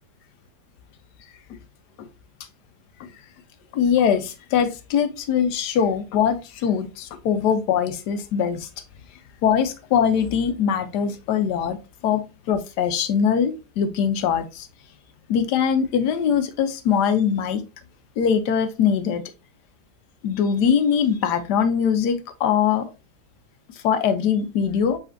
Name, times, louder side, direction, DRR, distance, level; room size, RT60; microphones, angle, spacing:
voice 1, 3.7-8.7 9.4-11.8 12.0-12.2 12.5-14.7 15.3-17.6 18.2-19.2 20.2-22.9 23.8-25.0, left 7 dB, 80° left, 9 dB, 1.3 m, -22 dB
4.8 x 4.2 x 2.6 m, 0.28 s
omnidirectional pair, 1.8 m